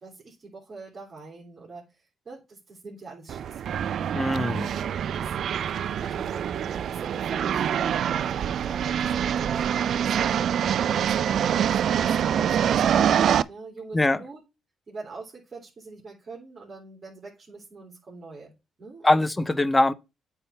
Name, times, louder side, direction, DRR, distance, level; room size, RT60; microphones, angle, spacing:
voice 1, 0.0-3.7 4.7-5.3 6.0-10.2 10.6-14.4 14.9-18.5 18.8-19.2, right 3 dB, 40° right, 3.2 m, -43 dB
sound 1, 3.3-13.4, right 9 dB, 65° right, 0.3 m, -25 dB
voice 2, 4.1-4.7 13.9-14.2 19.0-19.9, left 2 dB, 15° left, 0.6 m, -22 dB
8.7 x 3.5 x 4.3 m
cardioid pair, 90°, 0 cm